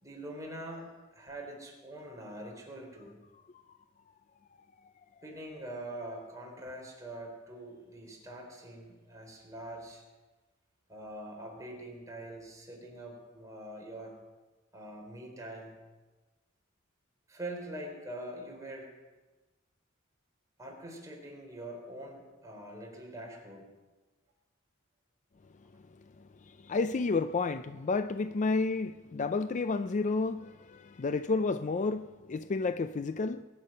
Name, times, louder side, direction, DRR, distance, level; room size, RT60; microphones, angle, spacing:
voice 1, 0.0-0.9 1.1-3.2 5.2-10.0 10.9-14.2 14.7-15.8 17.3-18.9 20.6-23.7, right 1 dB, 15° right, -1 dB, 3.9 m, -44 dB
voice 2, 26.6-33.4, left 3 dB, 35° left, 12 dB, 0.4 m, -31 dB
21.5 x 10.0 x 5.5 m, 1.2 s
head